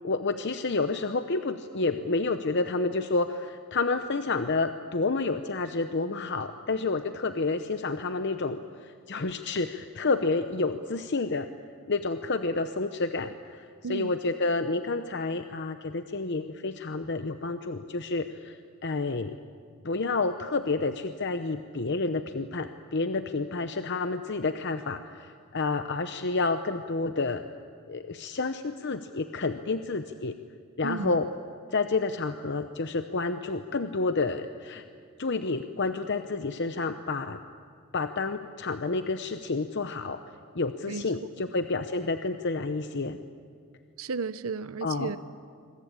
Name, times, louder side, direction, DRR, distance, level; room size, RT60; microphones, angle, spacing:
voice 1, 0.0-11.5 11.9-19.3 19.8-27.4 27.9-30.3 30.8-31.3 31.7-34.8 35.2-37.4 37.9-40.2 40.5-43.2 44.8-45.1, left 3 dB, 55° left, 9 dB, 0.8 m, -29 dB
voice 2, 30.8-31.2 40.9-41.0 41.4-41.5 44.0-45.2, right 4 dB, 75° right, 14 dB, 0.7 m, -33 dB
25.5 x 23.5 x 8.8 m, 2.1 s
head